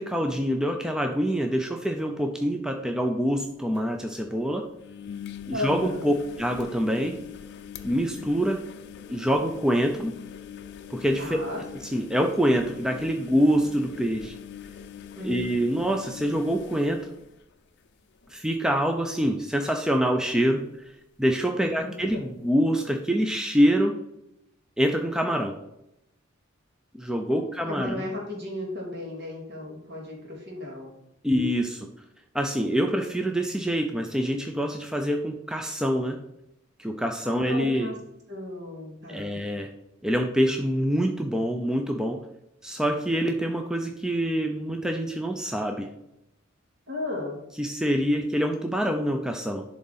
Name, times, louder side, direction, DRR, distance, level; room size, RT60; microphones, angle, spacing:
voice 1, 0.0-4.7 5.5-7.2 7.8-8.6 9.1-10.1 10.9-11.4 11.8-14.3 15.2-17.0 18.3-20.6 21.2-23.9 24.8-25.6 26.9-28.0 31.2-31.9 32.3-36.2 36.8-37.9 39.1-39.7 40.0-42.2 42.6-45.9 47.6-49.6, equal, 5° right, 3 dB, 0.4 m, -25 dB
sound 1, 3.5-3.6 3.8-3.9 4.8-17.9 18.2-18.7 18.9-19.0 20.9-21.0, left 8 dB, 55° left, 0.5 m, -42 dB
voice 2, 5.5-6.1 11.2-11.6 15.2-15.3 27.3-30.9 37.2-38.0 38.3-39.4 46.9-47.4, left 1 dB, 55° right, -1 dB, 2.4 m, -34 dB
11.0 x 3.7 x 4.0 m, 0.84 s
head